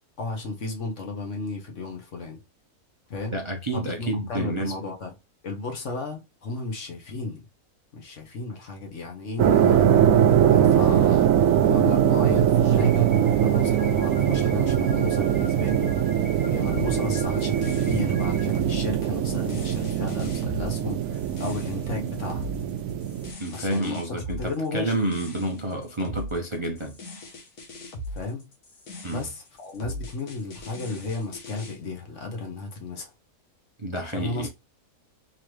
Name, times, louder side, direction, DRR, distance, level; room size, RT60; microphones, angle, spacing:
voice 1, 0.2-2.4 3.1-3.3 3.7-5.1 5.4-7.5 7.9-9.9 10.5-11.3 11.7-13.1 13.4-15.9 16.4-22.5 23.5-24.9 28.1-28.4 29.1-33.1 34.0-34.5, left 3 dB, 55° left, 1.4 m, -33 dB
voice 2, 3.3-4.7 23.4-27.0 29.0-29.2 33.8-34.5, right 1 dB, 35° right, 0.4 m, -29 dB
sound 1, 9.4-23.3, right 9 dB, 70° right, 1.0 m, -22 dB
sound 2, 12.8-18.6, equal, 25° left, 1.9 m, -44 dB
sound 3, 16.7-31.8, left 1 dB, 80° left, 1.6 m, -40 dB
3.8 x 3.0 x 3.1 m
omnidirectional pair, 1.6 m